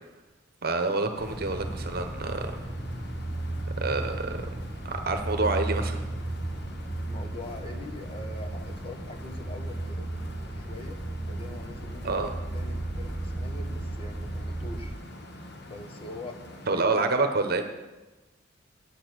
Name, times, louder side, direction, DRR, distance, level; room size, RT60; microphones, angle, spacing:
voice 1, 0.6-2.5 3.8-4.4 4.8-6.0 12.0-12.4 16.7-17.6, right 3 dB, 50° right, 7 dB, 1.0 m, -27 dB
sound 1, 1.1-16.7, left 1 dB, 60° left, 1.2 m, -45 dB
sound 2, 1.2-14.9, right 1 dB, 15° right, 1.3 m, -35 dB
voice 2, 7.0-10.1 10.5-11.0 11.3-14.9 15.7-16.4 16.7-17.1, left 2 dB, 30° left, 5 dB, 1.0 m, -43 dB
8.9 x 8.8 x 6.3 m, 1.1 s
head